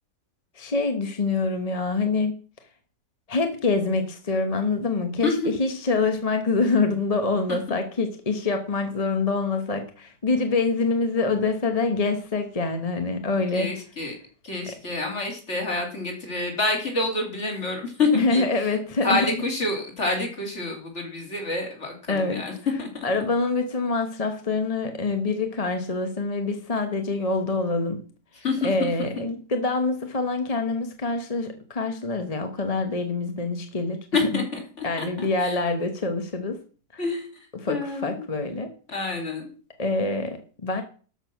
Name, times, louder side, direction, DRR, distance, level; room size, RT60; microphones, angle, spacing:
voice 1, 0.5-2.4 3.3-13.7 14.7-14.8 18.1-19.3 22.1-22.4 23.0-28.0 28.3-34.0 34.3-34.4 34.8-36.6 36.9-37.0 37.5-38.7 39.8-40.8, left 3 dB, 25° left, 6 dB, 1.0 m, -25 dB
voice 2, 13.5-14.1 14.4-18.5 19.0-22.5 22.8-23.1 28.4-28.7 29.0-29.1 34.1-35.6 37.0-37.3 37.7-38.3 38.9-39.5, left 3 dB, 40° left, 2 dB, 3.6 m, -27 dB
12.5 x 6.6 x 5.9 m, 0.40 s
omnidirectional pair, 1.8 m